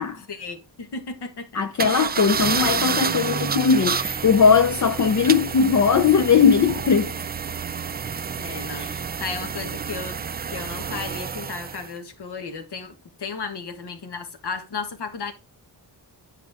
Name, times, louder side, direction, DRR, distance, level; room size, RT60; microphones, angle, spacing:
voice 1, 0.3-1.6 8.4-10.2 10.5-15.3, left 5 dB, 70° left, 1.5 m, -34 dB
voice 2, 1.5-7.1 8.8-8.9, left 6 dB, 45° left, 0.6 m, -19 dB
sound 1, 1.8-11.9, right 6 dB, 25° right, 0.3 m, -29 dB
10.5 x 5.1 x 3.5 m
wide cardioid pair, 105°, 42 cm